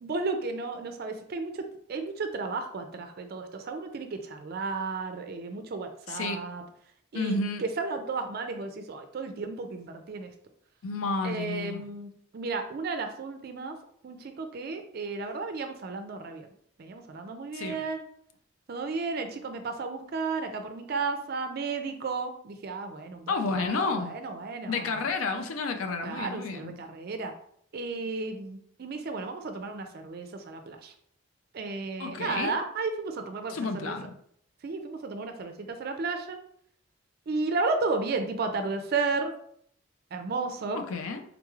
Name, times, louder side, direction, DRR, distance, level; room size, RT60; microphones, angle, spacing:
voice 1, 0.0-1.6 1.9-6.6 7.1-10.3 11.2-13.8 14.0-16.5 16.8-18.0 18.7-25.0 26.0-27.3 27.7-30.9 31.5-34.0 34.6-36.4 37.3-39.3 40.1-40.8, right 4 dB, 50° right, 6 dB, 0.4 m, -33 dB
voice 2, 6.1-6.4 7.1-7.6 10.8-11.9 17.5-17.8 23.3-24.1 24.7-26.7 32.0-32.6 33.5-34.1 40.7-41.2, left 3 dB, 80° left, 7 dB, 0.4 m, -31 dB
3.7 x 3.0 x 2.3 m, 0.66 s
head